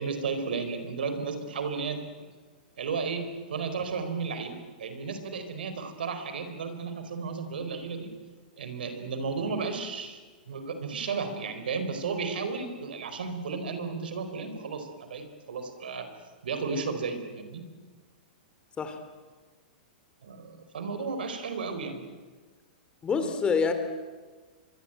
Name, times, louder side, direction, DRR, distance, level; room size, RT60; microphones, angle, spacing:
voice 1, 0.0-2.0 2.8-8.1 8.6-10.2 10.5-16.1 16.4-17.6 20.2-22.0, right 4 dB, 80° right, 8 dB, 4.5 m, -33 dB
voice 2, 23.0-23.7, left 5 dB, 20° left, 8 dB, 3.3 m, -26 dB
24.5 x 23.5 x 9.2 m, 1.4 s
hypercardioid pair, 130°, 5 cm